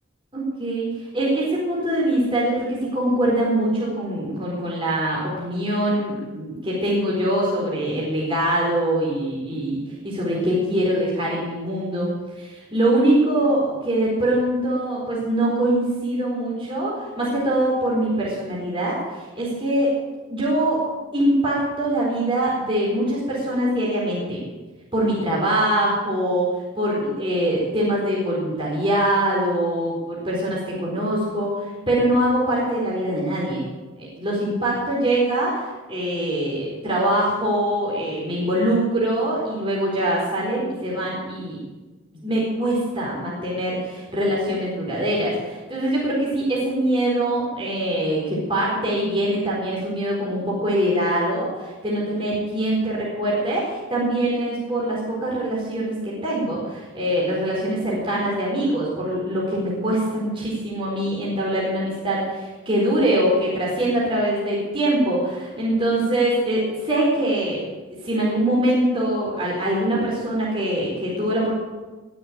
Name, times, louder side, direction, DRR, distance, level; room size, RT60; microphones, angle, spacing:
voice 1, 0.3-0.9 1.1-12.1 12.4-19.9 20.3-20.8 21.1-24.4 24.9-26.5 26.8-33.6 34.0-35.6 35.9-41.6 42.1-67.6 68.0-71.5, right 1 dB, 25° right, -5 dB, 4.2 m, -23 dB
20.0 x 6.7 x 9.3 m, 1.2 s
head